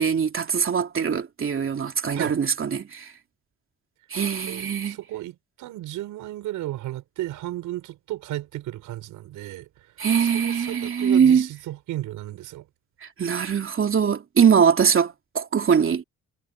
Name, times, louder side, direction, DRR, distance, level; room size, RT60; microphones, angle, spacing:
voice 1, 0.0-3.1 4.1-5.0 10.0-11.5 13.0-16.0, right 7 dB, 45° right, 3.0 m, -22 dB
voice 2, 4.4-9.9 10.2-12.7, right 15 dB, 90° right, 6.7 m, -34 dB
cardioid pair, 90°, 30 cm